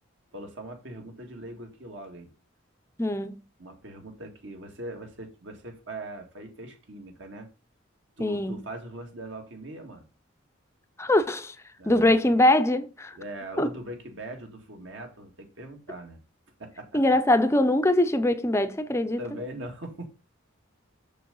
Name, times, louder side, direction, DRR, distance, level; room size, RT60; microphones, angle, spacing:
voice 1, 0.3-2.3 3.6-7.5 8.2-10.1 11.8-12.3 13.1-16.2 16.6-17.0 19.2-20.1, right 1 dB, 65° right, 2.1 m, -41 dB
voice 2, 3.0-3.3 8.2-8.6 11.0-11.6 11.9-13.2 13.6-13.7 16.9-19.2, left 1 dB, 15° left, 0.6 m, -22 dB
6.9 x 6.6 x 3.9 m
head